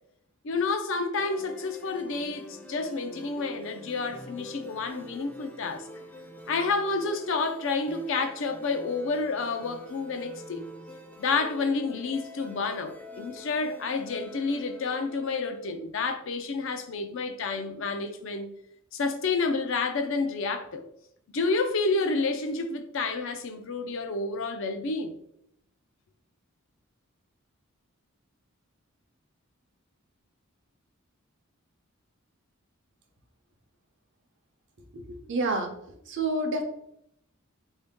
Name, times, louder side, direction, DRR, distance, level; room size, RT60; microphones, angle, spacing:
voice 1, 0.4-5.9 6.5-10.6 11.2-18.5 18.9-20.8 21.3-25.2, left 4 dB, 65° left, 7 dB, 0.5 m, -29 dB
sound 1, 1.2-15.7, left 1 dB, 10° left, 0.4 m, -46 dB
voice 2, 34.9-35.7 36.1-36.6, right 2 dB, 60° right, 4 dB, 0.7 m, -28 dB
3.6 x 2.7 x 3.5 m, 0.74 s
head